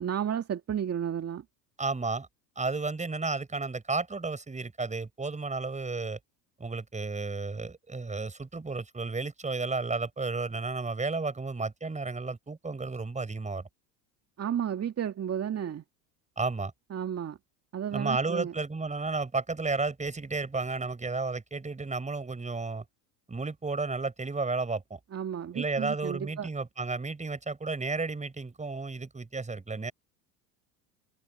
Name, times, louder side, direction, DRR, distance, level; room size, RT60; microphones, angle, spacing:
voice 1, 0.0-1.4 14.4-15.8 16.9-17.4 17.7-18.5 25.1-26.5, right 9 dB, 30° right, 2.4 m, -32 dB
voice 2, 1.8-2.3 2.6-6.2 6.6-13.6 16.4-16.7 17.9-22.8 23.3-25.0 25.5-29.9, right 3 dB, 15° right, 6.1 m, -32 dB
hypercardioid pair, 80°, 46 cm